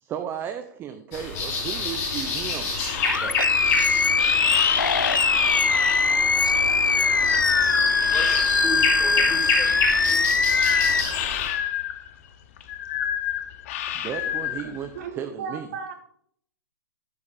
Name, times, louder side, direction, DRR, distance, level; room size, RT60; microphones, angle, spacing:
voice 1, 0.0-2.7 3.2-3.5 13.9-14.9 15.2-15.7, right 9 dB, 20° right, 8 dB, 0.6 m, -34 dB
sound 1, 1.1-11.5, left 3 dB, 25° left, 3.7 m, -28 dB
sound 2, 1.6-8.9 9.3-15.1, left 10 dB, 45° left, 0.8 m, -30 dB
Animal, 3.0-11.0, left 4 dB, 90° left, 0.4 m, -21 dB
voice 2, 7.6-10.4 14.2-14.3, equal, 5° left, 0 dB, 2.3 m, -37 dB
voice 3, 14.6-15.9, right 6 dB, 50° right, 6 dB, 1.5 m, -36 dB
9.6 x 7.2 x 4.0 m, 0.66 s
figure-of-eight pair, 110°, 10 cm